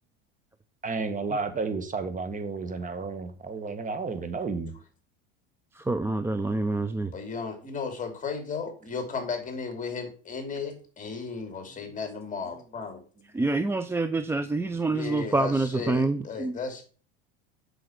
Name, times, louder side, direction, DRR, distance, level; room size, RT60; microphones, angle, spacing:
voice 1, 0.8-4.7 6.8-7.0, right 4 dB, 25° right, 1.8 m, -32 dB
voice 2, 5.7-7.1 13.3-16.6, right 3 dB, 10° right, 0.4 m, -27 dB
voice 3, 7.1-13.0 14.9-16.8, left 5 dB, 25° left, 3.1 m, -35 dB
7.8 x 6.3 x 5.9 m
supercardioid pair, 105°, 32 cm